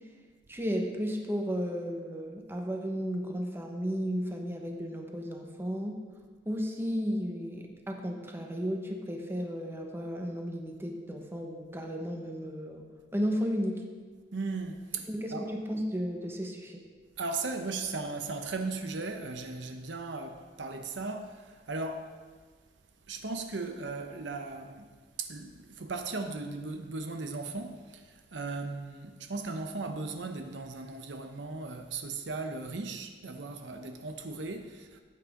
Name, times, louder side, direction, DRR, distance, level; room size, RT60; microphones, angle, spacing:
voice 1, 0.5-6.0 6.4-12.8 13.1-13.8 15.1-16.8, equal, 15° right, 1.2 m, -34 dB
voice 2, 14.3-15.5 17.2-22.1 23.1-24.9 25.2-35.0, right 3 dB, 70° right, 0.8 m, -37 dB
14.5 x 8.5 x 3.7 m
head